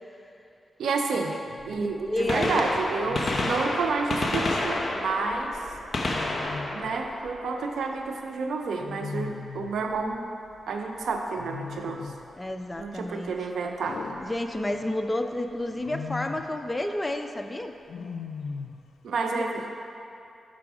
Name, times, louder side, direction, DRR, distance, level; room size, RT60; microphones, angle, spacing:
voice 1, 0.8-1.4 1.6-5.6 6.7-10.3 10.7-12.1 12.8-14.0 19.0-19.7, right 4 dB, 80° right, 3 dB, 0.6 m, -30 dB
Wild animals, 1.5-1.8 3.1-3.8 6.1-7.0 8.8-9.9 11.4-12.3 13.8-15.0 15.7-16.6 17.9-18.9, left 5 dB, 85° left, 0.3 m, -38 dB
Gunshot gunfire, 1.6-1.7 2.1-8.0 9.9-10.1 11.1-11.2 12.8-12.9 14.3-14.4 14.6-14.7, left 2 dB, 45° left, 0.8 m, -30 dB
voice 2, 1.8-2.6 12.3-13.3 14.2-17.7 19.3-19.7, left 1 dB, 20° left, 6 dB, 0.5 m, -31 dB
6.2 x 5.9 x 4.8 m, 2.7 s
cardioid pair, 55°, 0 cm